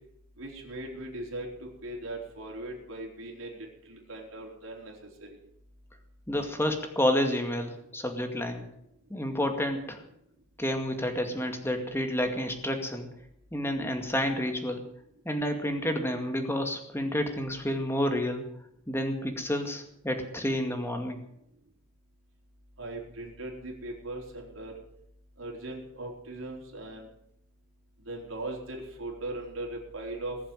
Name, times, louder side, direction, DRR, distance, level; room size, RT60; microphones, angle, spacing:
voice 1, 0.4-3.6 3.9-5.4 22.8-24.7 25.4-27.1 28.0-30.4, right 2 dB, 85° right, 0 dB, 4.2 m, -39 dB
voice 2, 6.3-8.6 9.1-10.0 10.6-13.1 13.5-14.8 15.3-18.4 18.9-21.2, left 1 dB, 10° left, 5 dB, 2.1 m, -29 dB
20.0 x 7.6 x 9.0 m, 0.76 s
head